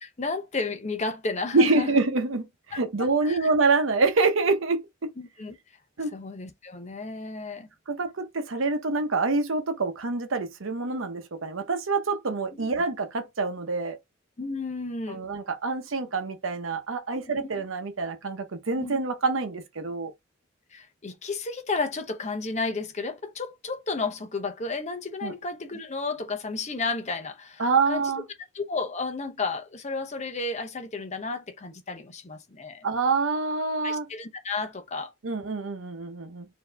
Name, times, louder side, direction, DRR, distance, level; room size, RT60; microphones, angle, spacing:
voice 1, 0.0-1.9 3.0-3.5 5.2-5.6 6.1-7.7 12.5-12.7 14.4-15.2 17.4-17.6 18.8-18.9 20.7-28.1 28.5-32.9 33.8-35.1, left 3 dB, 35° left, 0.8 m, -32 dB
voice 2, 1.5-5.1 6.0-6.1 7.9-14.0 15.1-20.1 25.2-25.3 27.6-28.2 32.8-34.1 35.2-36.5, right 3 dB, 80° right, 0.8 m, -26 dB
4.4 x 2.9 x 3.4 m
head